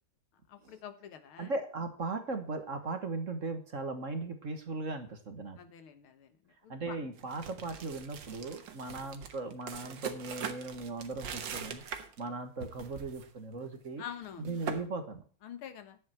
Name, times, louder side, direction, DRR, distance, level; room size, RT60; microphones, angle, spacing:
voice 1, 0.5-1.5 5.6-6.4 6.6-7.0 14.0-14.5 15.4-16.0, left 9 dB, 85° left, 9 dB, 2.2 m, -46 dB
voice 2, 1.4-5.6 6.7-11.8 12.2-14.0 14.4-15.2, right 3 dB, 40° right, 8 dB, 1.6 m, -38 dB
sound 1, 7.2-12.3 12.6-13.3 13.5-13.8 14.2-14.8, right 7 dB, 65° right, 1.9 m, -42 dB
10.5 x 8.6 x 4.4 m, 0.40 s
omnidirectional pair, 2.3 m